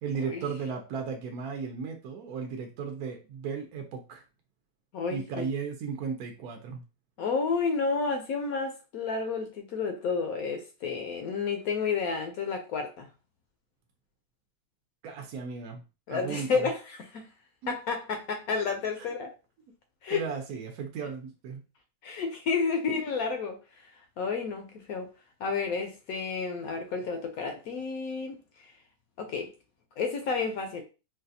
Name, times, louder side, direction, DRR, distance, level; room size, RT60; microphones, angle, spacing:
voice 1, 0.0-4.2 5.1-6.8 15.0-15.8 16.1-16.7 17.6-17.7 19.0-19.1 20.1-21.6, right 5 dB, 70° right, 1.0 m, -35 dB
voice 2, 4.9-5.5 7.2-13.1 16.1-17.3 17.7-19.3 20.0-20.3 22.0-23.9 24.2-25.1 25.4-28.7 29.2-29.5 30.0-30.8, left 5 dB, 70° left, 0.9 m, -31 dB
4.0 x 2.4 x 2.6 m
omnidirectional pair, 1.8 m